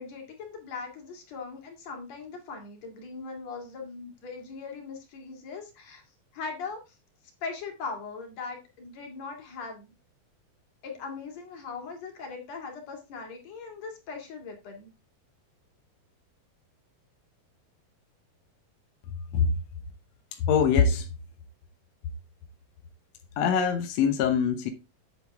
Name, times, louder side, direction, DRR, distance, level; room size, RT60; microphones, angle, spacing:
voice 1, 0.0-6.0 6.3-7.0 7.4-9.9 10.8-14.9, left 4 dB, 50° left, 3.4 m, -40 dB
voice 2, 20.3-21.1 23.4-24.7, left 6 dB, 70° left, 1.6 m, -23 dB
9.2 x 7.6 x 3.5 m
omnidirectional pair, 4.2 m